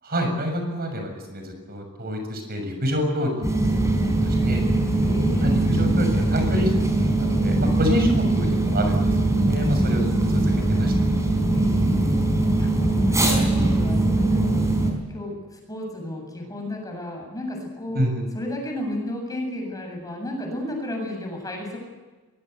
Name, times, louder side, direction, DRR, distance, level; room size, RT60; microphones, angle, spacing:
voice 1, 0.0-4.6 5.4-6.9 7.2-9.0 9.4-10.9 17.9-18.3, equal, 45° right, 5 dB, 6.9 m, -27 dB
sound 1, 3.4-14.9, right 2 dB, 15° right, 4.9 m, -21 dB
voice 2, 4.8-6.0 9.6-9.7 11.5-14.7 15.1-18.0 18.3-21.8, left 1 dB, 15° left, 1 dB, 7.6 m, -33 dB
23.5 x 21.5 x 8.1 m, 1.2 s
head